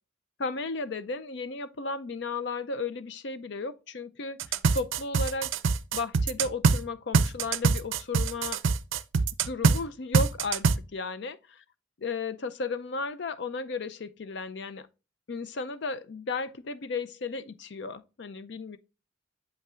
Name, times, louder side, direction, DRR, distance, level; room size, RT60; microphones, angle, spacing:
voice 1, 0.4-5.5 5.9-8.6 9.4-10.7 10.9-11.6 12.0-14.9 15.3-18.8, left 3 dB, 60° left, 0.5 m, -34 dB
sound 1, 4.4-6.8 7.1-9.8 10.1-10.7, right 4 dB, 75° right, 0.4 m, -23 dB
7.9 x 5.5 x 2.4 m
head